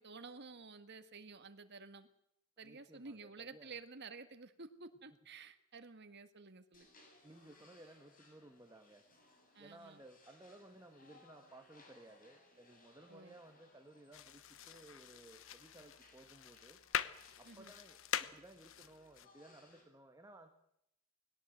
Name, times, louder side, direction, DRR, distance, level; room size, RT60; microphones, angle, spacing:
voice 1, 0.0-2.1 2.6-6.9 9.6-10.0 13.1-13.3 17.4-17.7, right 4 dB, 55° right, 9 dB, 1.8 m, -52 dB
voice 2, 2.6-3.7 7.2-9.0 9.6-16.8 17.4-20.6, right 1 dB, 15° right, 4 dB, 1.6 m, -58 dB
sound 1, 6.7-19.8, left 2 dB, 40° left, 7.7 m, -66 dB
sound 2, 14.1-19.3, left 9 dB, 65° left, 1.0 m, -44 dB
21.0 x 18.0 x 7.9 m, 0.76 s
head